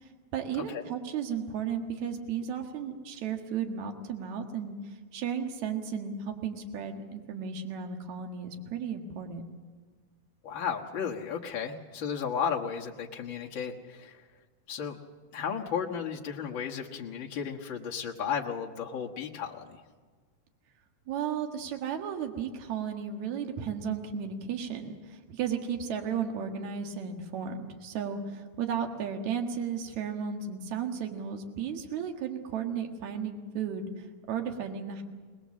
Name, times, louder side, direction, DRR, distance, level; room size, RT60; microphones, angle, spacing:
voice 1, 0.3-4.8 5.1-9.4 21.1-35.0, right 7 dB, 55° right, 4 dB, 2.7 m, -34 dB
voice 2, 10.4-14.3 14.7-15.0 15.3-19.8, left 7 dB, 65° left, -1 dB, 1.2 m, -34 dB
23.0 x 20.0 x 7.4 m, 1.5 s
omnidirectional pair, 4.4 m